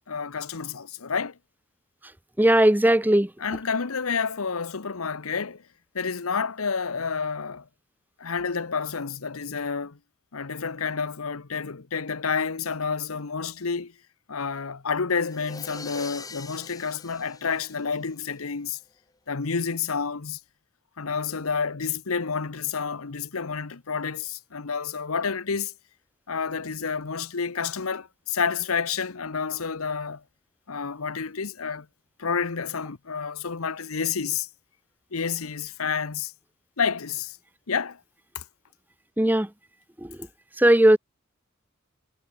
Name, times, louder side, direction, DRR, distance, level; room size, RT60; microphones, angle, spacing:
voice 1, 0.1-1.4 3.4-5.6 5.9-7.7 8.2-10.0 10.3-13.9 14.3-18.8 19.3-20.4 21.0-25.7 26.3-30.2 30.7-31.9 32.2-34.5 35.1-36.3 36.8-37.4 37.7-38.0 38.3-38.4, left 5 dB, 90° left, 1.0 m, -29 dB
voice 2, 2.4-3.3 39.2-39.5 40.0-40.2 40.6-41.0, right 1 dB, 10° right, 0.7 m, -18 dB
sound 1, 15.1-18.4, left 4 dB, 15° left, 2.0 m, -43 dB
head